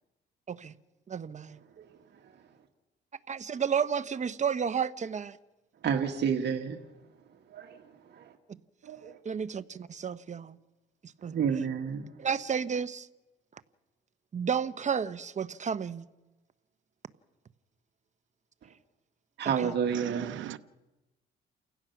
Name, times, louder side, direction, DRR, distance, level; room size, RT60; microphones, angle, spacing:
voice 1, 1.1-1.6 3.3-5.4 9.2-10.6 11.2-11.4 12.2-13.1 14.3-16.1 19.4-19.7, right 7 dB, 35° right, 0.9 m, -32 dB
voice 2, 5.8-6.8 7.5-7.8 8.1-8.3 8.8-9.2 11.3-12.1 19.4-20.3, right 7 dB, 60° right, 1.9 m, -30 dB
voice 3, 19.9-20.6, right 13 dB, 75° right, 0.8 m, -38 dB
29.5 x 16.5 x 6.0 m
cardioid pair, 90°, 20 cm